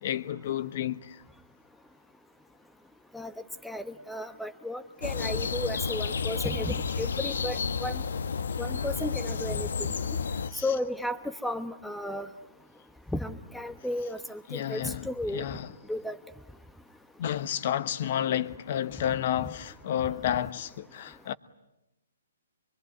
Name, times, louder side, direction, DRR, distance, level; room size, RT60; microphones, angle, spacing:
voice 1, 0.0-1.2 10.5-10.7 14.5-15.7 17.2-21.3, left 10 dB, 45° left, 1.1 m, -31 dB
voice 2, 3.6-8.0 8.6-9.9 10.6-12.3 13.1-15.4 15.9-16.2 19.4-19.5, left 1 dB, ahead, 1.0 m, -34 dB
sound 1, 5.0-10.5, left 5 dB, 75° left, 1.1 m, -31 dB
24.0 x 24.0 x 9.7 m
hypercardioid pair, 155°, 0 cm